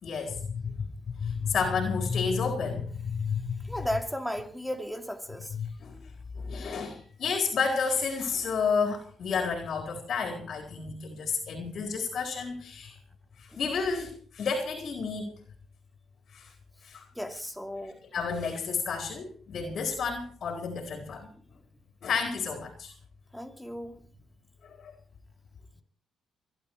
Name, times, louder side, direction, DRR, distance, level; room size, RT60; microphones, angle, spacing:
voice 1, 0.0-0.9 1.2-3.7 5.6-6.0 6.4-13.0 13.4-15.3 16.3-16.5 16.8-17.0 18.1-21.3 22.0-22.9 24.6-24.9, left 5 dB, 60° left, 4.1 m, -31 dB
voice 2, 3.6-5.6 13.5-13.6 17.1-18.0 23.3-24.1, equal, ahead, 2.7 m, -35 dB
24.0 x 12.5 x 4.7 m
cardioid pair, 90°, 0 cm